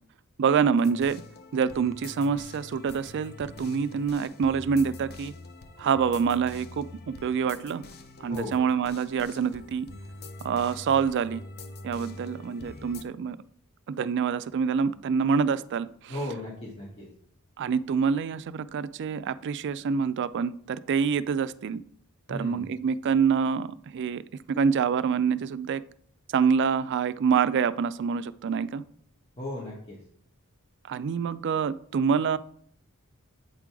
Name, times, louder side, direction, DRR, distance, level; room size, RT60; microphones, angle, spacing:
voice 1, 0.4-1.2 1.5-5.3 5.8-7.8 8.2-9.9 10.4-11.4 11.8-13.4 13.9-16.2 17.6-21.8 22.3-24.2 24.5-25.8 26.3-28.8 30.8-32.4, right 6 dB, 55° right, 15 dB, 0.3 m, -26 dB
sound 1, 0.8-13.0, left 3 dB, 50° left, 0.6 m, -45 dB
voice 2, 8.3-8.6 16.1-17.1 22.3-22.7 29.4-30.0, left 1 dB, 25° left, -5 dB, 1.3 m, -36 dB
8.1 x 3.8 x 4.6 m, 0.62 s
head